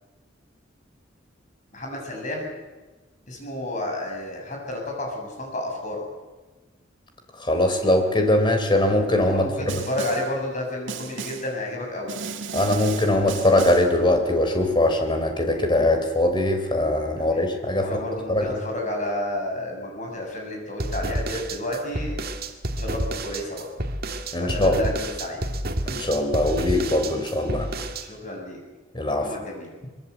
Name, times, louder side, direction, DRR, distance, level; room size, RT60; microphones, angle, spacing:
voice 1, 1.7-2.5 3.3-6.0 9.3-12.2 17.2-17.5 17.8-22.1 22.8-23.7 24.4-25.4 28.0-28.6 29.2-29.7, left 1 dB, 40° left, 1 dB, 7.3 m, -31 dB
voice 2, 7.4-9.7 12.5-17.9 18.3-18.6 24.3-24.9 25.9-27.7 28.9-29.3, left 1 dB, 25° left, 5 dB, 3.5 m, -21 dB
Snare drum, 9.7-10.4 10.9-11.6 12.1-14.0, right 5 dB, 75° right, 1.8 m, -35 dB
sound 1, 20.8-28.1, right 1 dB, 50° right, 2.0 m, -29 dB
23.5 x 22.5 x 8.2 m, 1.2 s
head